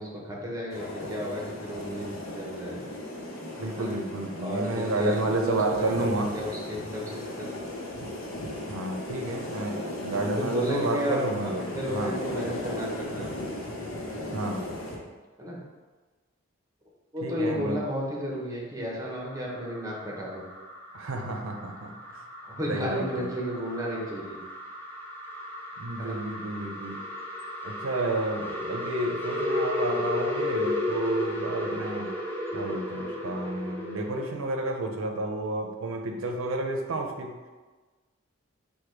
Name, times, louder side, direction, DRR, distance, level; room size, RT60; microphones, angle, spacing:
voice 1, 0.0-2.9 3.8-3.9 4.4-7.5 9.1-9.4 10.2-13.5 15.4-15.6 17.1-20.4 22.4-24.4 26.0-26.2, equal, 15° right, -3 dB, 0.8 m, -33 dB
sound 1, 0.7-15.0, left 1 dB, 85° left, 0.9 m, -36 dB
voice 2, 3.6-6.4 8.7-12.2 14.3-14.6 17.2-17.8 20.9-22.2 22.7-23.3 25.8-27.1 27.6-32.1 32.5-37.4, right 2 dB, 85° right, 3 dB, 0.6 m, -31 dB
sound 2, 19.3-34.4, left 1 dB, 10° left, 0.5 m, -34 dB
5.0 x 2.2 x 4.4 m, 1.3 s
head